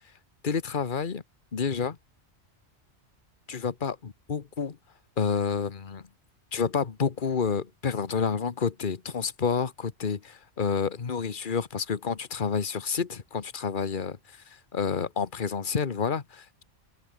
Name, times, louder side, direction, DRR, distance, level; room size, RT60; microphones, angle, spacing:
voice 1, 0.4-1.2 1.5-2.0 3.5-4.8 5.2-6.1 6.5-14.2 14.7-16.6, left 6 dB, 45° left, 1.4 m, -29 dB
open air
omnidirectional pair, 1.2 m